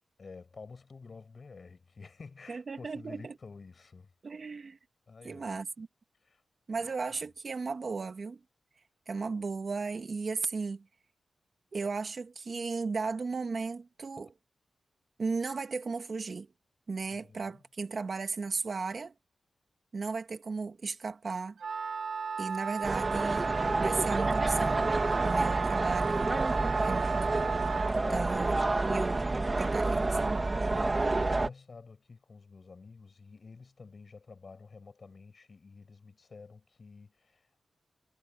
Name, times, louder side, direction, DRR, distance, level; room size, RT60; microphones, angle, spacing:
voice 1, 0.2-4.1 5.1-5.6 6.2-6.4 6.7-6.9 17.1-17.6 28.0-28.4 30.8-37.7, left 4 dB, 50° left, 6.6 m, -50 dB
voice 2, 2.5-3.3 4.2-4.8 5.2-5.9 6.7-8.4 9.1-10.8 11.7-14.3 15.2-16.5 16.9-19.1 19.9-21.6 22.4-24.9 25.2-26.3 26.8-27.1 28.1-28.6 28.9-29.2 29.6-30.4, right 4 dB, 55° right, 2.2 m, -35 dB
Wind instrument woodwind instrument, 21.6-28.0, right 5 dB, 75° right, 2.0 m, -35 dB
sound 1, 22.8-31.5, right 2 dB, 30° right, 3.1 m, -29 dB
wide cardioid pair, 85°, 0 cm